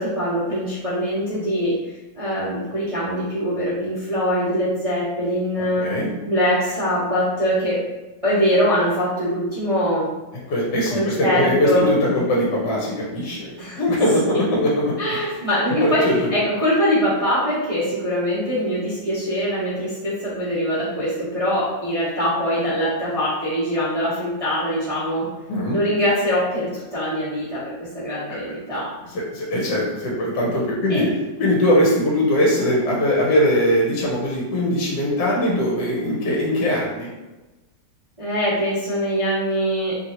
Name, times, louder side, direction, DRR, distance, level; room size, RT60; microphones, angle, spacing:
voice 1, 0.0-1.7 2.1-5.9 6.2-7.8 8.2-10.1 10.9-11.9 13.6-13.8 14.3-14.4 15.0-25.3 25.7-28.9 30.9-31.0 38.2-40.0, equal, 40° right, -11 dB, 0.5 m, -23 dB
voice 2, 5.8-6.1 10.5-14.9 15.8-16.3 25.5-25.8 28.3-28.4 29.3-31.1 31.4-37.1, left 1 dB, 70° left, -3 dB, 1.2 m, -21 dB
3.1 x 2.6 x 2.8 m, 1.1 s
omnidirectional pair, 2.1 m